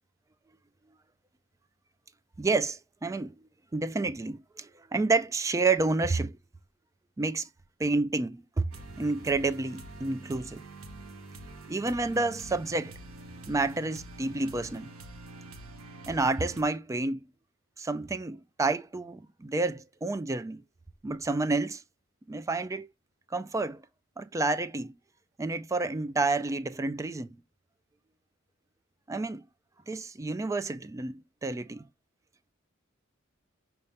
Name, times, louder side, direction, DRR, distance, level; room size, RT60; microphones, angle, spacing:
voice 1, 2.4-3.3 3.7-6.4 7.2-7.5 7.8-8.7 9.0-10.6 11.7-13.0 13.5-14.9 16.1-17.2 17.8-20.6 21.0-21.8 22.3-22.9 23.3-23.8 24.2-24.9 25.4-27.4 29.1-29.4 29.9-31.8, right 3 dB, 15° right, 0.3 m, -29 dB
sound 1, 8.7-16.6, right 2 dB, 85° right, 0.9 m, -46 dB
5.8 x 2.7 x 3.2 m
head